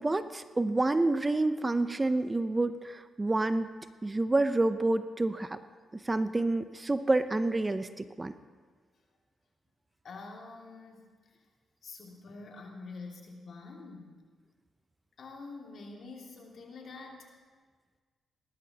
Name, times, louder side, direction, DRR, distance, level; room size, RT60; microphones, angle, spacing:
voice 1, 0.0-3.7 4.0-5.6 6.0-8.3, right 2 dB, 25° right, 11 dB, 0.6 m, -28 dB
voice 2, 10.0-11.1 11.8-14.2 15.2-17.3, left 3 dB, 65° left, 0 dB, 2.3 m, -46 dB
19.0 x 12.0 x 2.8 m, 1.5 s
cardioid pair, 60°, 0 cm